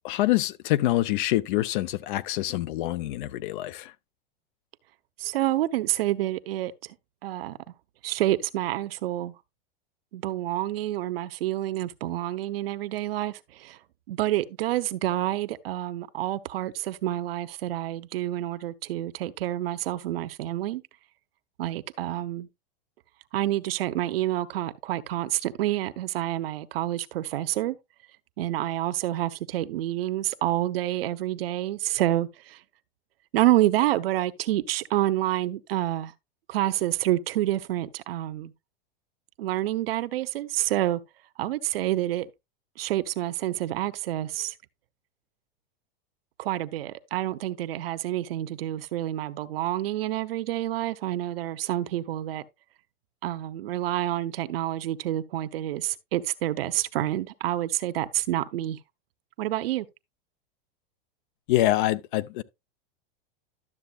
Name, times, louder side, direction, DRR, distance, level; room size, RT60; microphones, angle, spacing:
voice 1, 0.0-3.9 61.5-62.4, left 15 dB, 60° left, 0.7 m, -25 dB
voice 2, 5.2-6.7 7.2-7.6 8.0-9.3 10.1-13.8 14.1-20.8 21.6-22.5 23.3-27.8 28.4-32.6 33.3-36.1 36.5-38.5 39.4-41.0 41.4-42.3 42.8-44.5 46.4-52.4 53.2-58.8 59.4-59.9, right 14 dB, 75° right, 0.8 m, -28 dB
12.0 x 7.0 x 2.3 m
supercardioid pair, 145°, 29 cm